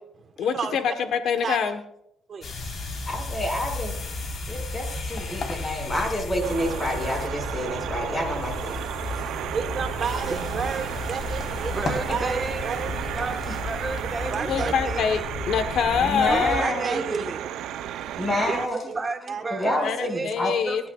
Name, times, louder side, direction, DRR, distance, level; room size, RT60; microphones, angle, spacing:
voice 1, 0.4-1.8 14.5-15.2 15.5-16.7 19.8-20.9, left 7 dB, 75° left, 7 dB, 1.2 m, -25 dB
sound 1, 2.4-16.6, left 2 dB, 50° left, 3.9 m, -33 dB
voice 2, 3.1-3.9 4.5-8.8 13.5-13.6 16.0-17.0 18.2-18.8 19.5-20.5, left 1 dB, 20° left, 2 dB, 5.9 m, -28 dB
sound 2, 6.4-18.7, right 11 dB, 85° right, 0.6 m, -33 dB
voice 3, 9.5-12.9 13.2-13.3 14.3-14.7 16.3-17.3 18.9-19.0 19.3-19.4 19.8-20.1, right 6 dB, 50° right, 7 dB, 1.3 m, -31 dB
voice 4, 11.7-15.4 16.2-17.4 18.1-20.3 20.6-20.9, right 3 dB, 30° right, 5 dB, 1.4 m, -33 dB
28.5 x 11.5 x 2.4 m, 0.75 s
cardioid pair, 90°, 0 cm